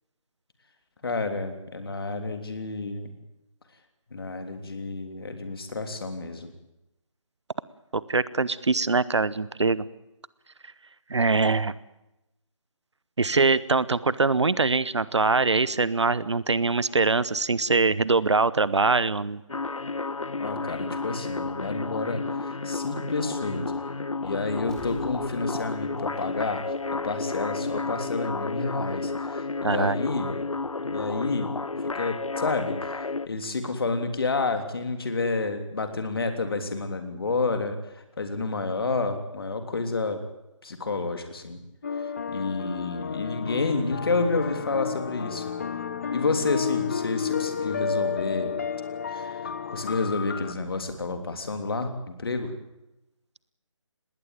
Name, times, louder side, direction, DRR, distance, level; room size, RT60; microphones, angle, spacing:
voice 1, 1.0-3.1 4.1-6.5 20.4-23.7 24.2-26.6 27.0-30.3 30.8-31.5 31.8-40.2 40.6-41.6 42.0-45.4 46.1-48.5 49.1-52.5, left 3 dB, 45° left, 7 dB, 3.3 m, -30 dB
voice 2, 7.9-9.8 11.1-11.7 13.2-19.4 29.6-30.0, right 4 dB, 60° right, 19 dB, 1.0 m, -23 dB
sound 1, 19.5-33.3, left 3 dB, 80° left, 0.8 m, -31 dB
Explosion, 24.7-27.3 27.6-27.7, equal, 5° left, 1.4 m, -50 dB
sound 2, 41.8-50.5, left 7 dB, 30° left, 0.9 m, -31 dB
20.5 x 17.0 x 9.1 m, 0.91 s
figure-of-eight pair, 160°, 17 cm